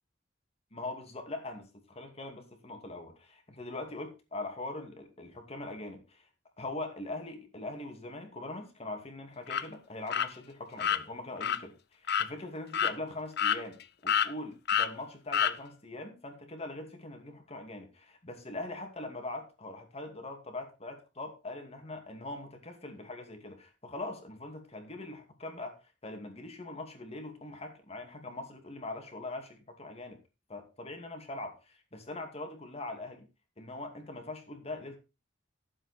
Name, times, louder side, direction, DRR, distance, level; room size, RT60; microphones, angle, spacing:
voice 1, 0.7-6.3 6.6-30.2 30.5-33.3 33.6-35.0, left 2 dB, 35° left, 5 dB, 2.5 m, -42 dB
sound 1, 9.5-9.6 10.1-10.3 10.8-11.0 11.4-11.6 12.1-12.3 12.7-12.9 13.4-13.8 14.1-14.3 14.7-14.9 15.3-15.5, left 8 dB, 60° left, 0.7 m, -27 dB
13.0 x 7.5 x 4.3 m, 0.29 s
head